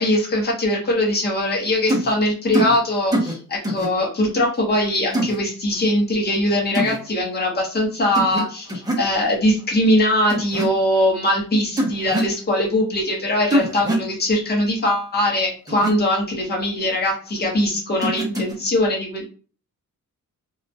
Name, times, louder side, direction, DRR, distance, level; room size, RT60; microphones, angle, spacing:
voice 1, 0.0-19.3, left 1 dB, 30° left, -2 dB, 0.8 m, -21 dB
sound 1, 1.9-2.1 2.5-2.8 3.1-3.3 3.6-3.9 5.1-5.4 6.7-7.0 8.1-8.4 8.7-9.1 10.3-10.7 11.8-12.3 13.5-14.1 15.7-15.9 18.0-18.5, right 1 dB, 10° right, 0.5 m, -22 dB
2.3 x 2.1 x 2.6 m, 0.38 s
wide cardioid pair, 165°, 33 cm